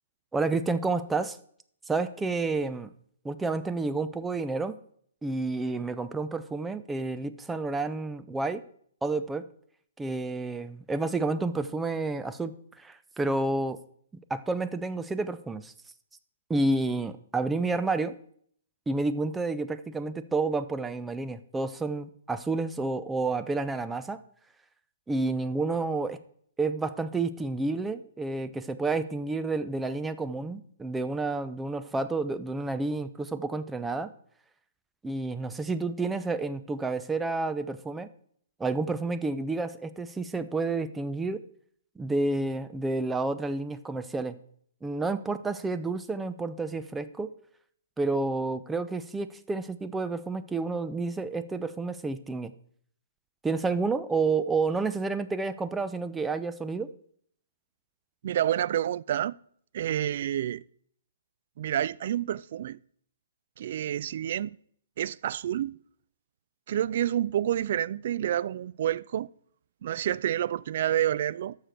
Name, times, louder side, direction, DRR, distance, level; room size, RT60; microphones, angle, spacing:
voice 1, 0.3-1.4 1.9-2.9 3.2-4.8 5.2-8.6 9.0-9.4 10.0-13.8 14.3-15.7 16.5-18.2 18.9-24.2 25.1-26.2 26.6-34.1 35.0-38.1 38.6-41.4 42.0-44.4 44.8-47.3 48.0-52.5 53.4-56.9, right 3 dB, 10° right, 0.5 m, -30 dB
voice 2, 58.2-59.3 59.7-60.6 61.6-62.8 63.6-64.5 65.0-65.8 66.7-69.3 69.8-71.6, right 11 dB, 55° right, 0.3 m, -28 dB
12.0 x 6.6 x 4.5 m
hypercardioid pair, 130°, 0 cm